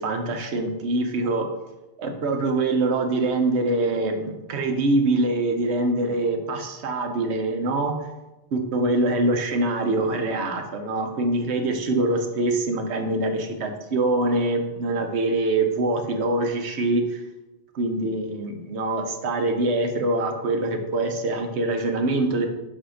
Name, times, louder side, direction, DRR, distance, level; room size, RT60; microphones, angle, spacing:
voice 1, 0.0-1.5 2.0-7.9 8.5-17.2 17.7-22.5, right 2 dB, 90° right, 4 dB, 1.1 m, -24 dB
7.4 x 2.8 x 5.0 m, 1.0 s
omnidirectional pair, 1.1 m